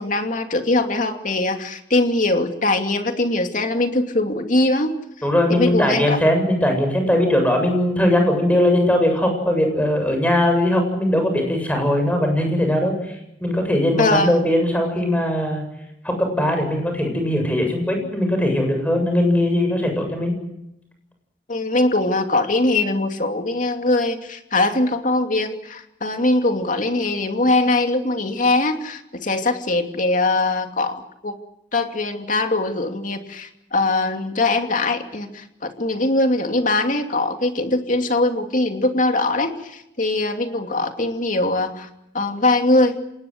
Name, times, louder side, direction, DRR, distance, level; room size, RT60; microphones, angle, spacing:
voice 1, 0.0-4.9 5.5-6.2 14.0-14.3 21.5-31.0 31.2-31.3 31.7-41.9 42.1-43.0, left 2 dB, 50° left, 5 dB, 2.7 m, -21 dB
voice 2, 5.2-13.2 13.4-15.6 16.0-20.3, left 1 dB, 10° left, 4 dB, 7.8 m, -20 dB
26.5 x 19.5 x 8.0 m, 0.84 s
head